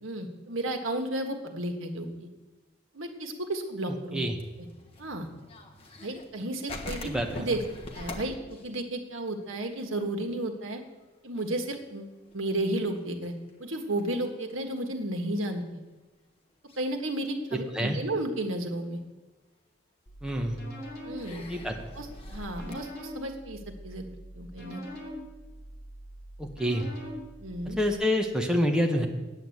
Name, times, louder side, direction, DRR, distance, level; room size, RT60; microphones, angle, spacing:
voice 1, 0.0-2.3 2.9-4.2 5.0-5.3 6.0-7.1 7.4-7.6 7.9-10.8 11.2-13.3 13.6-15.8 16.8-19.0 21.0-21.4 22.0-24.0 24.3-24.8 27.4-27.8, right 1 dB, 85° right, 4 dB, 1.6 m, -33 dB
sound 1, 4.2-6.4 6.7-9.9 10.2-10.3 10.7-11.0 11.4-14.8 15.5-15.6 16.7-16.9 17.4-18.1 18.6-18.7 20.1-20.2 21.2-22.8, left 2 dB, 30° left, 1.3 m, -44 dB
voice 2, 7.0-7.5 17.5-18.0 20.2-20.6 21.5-21.7 26.4-26.9 27.8-29.1, equal, 5° right, 1 dB, 1.1 m, -27 dB
sound 2, 20.1-27.9, equal, 50° left, 3.9 m, -44 dB
9.2 x 9.0 x 7.9 m, 1.2 s
head